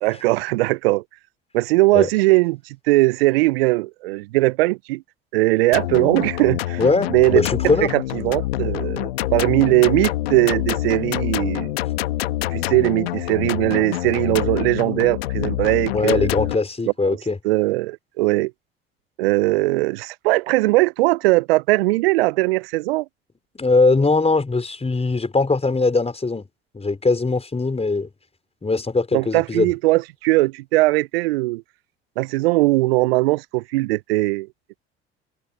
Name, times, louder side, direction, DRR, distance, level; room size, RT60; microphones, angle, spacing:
voice 1, 0.0-1.0 1.5-5.0 5.3-6.8 7.1-7.4 7.8-11.8 12.5-16.3 17.1-17.2 17.4-18.5 19.2-23.1 29.1-31.6 32.2-34.5, right 21 dB, 75° right, 0.6 m, -20 dB
sound 1, 5.7-16.6, left 15 dB, 80° left, 1.3 m, -26 dB
voice 2, 6.8-7.9 15.9-17.4 23.5-26.4 26.7-28.1 28.6-29.7, left 3 dB, 20° left, 5.0 m, -20 dB
hypercardioid pair, 55°, 30 cm